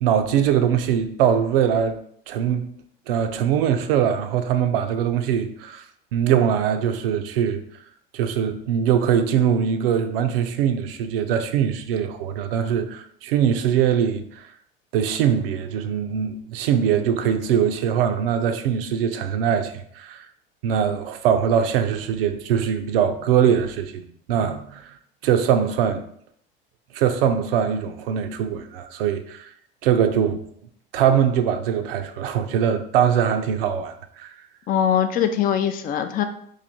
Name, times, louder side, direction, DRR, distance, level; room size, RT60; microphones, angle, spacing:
voice 1, 0.0-2.0 2.3-2.7 3.1-5.8 6.1-7.6 8.1-14.5 14.9-20.3 20.6-24.0 24.3-25.0 25.2-26.0 26.9-29.5 29.8-30.4 30.9-34.3, right 8 dB, 75° right, 0.5 m, -22 dB
voice 2, 34.7-36.2, left 9 dB, 30° left, 0.4 m, -22 dB
3.2 x 2.6 x 3.9 m
hypercardioid pair, 80°, 29 cm